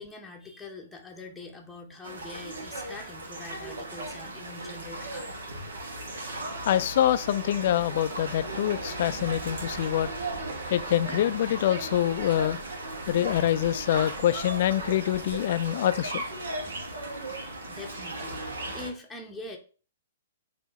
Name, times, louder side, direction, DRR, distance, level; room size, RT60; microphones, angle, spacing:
voice 1, 0.0-5.3 16.9-17.0 17.4-18.4 18.7-19.6, left 2 dB, 5° left, 0.8 m, -43 dB
sound 1, 2.0-18.9, right 2 dB, 75° right, 1.3 m, -36 dB
voice 2, 6.7-10.1 10.7-12.6 13.1-16.2, left 11 dB, 55° left, 0.3 m, -25 dB
sound 2, 9.1-15.8, right 5 dB, 50° right, 1.2 m, -50 dB
4.5 x 2.8 x 4.1 m
hypercardioid pair, 125°, 0 cm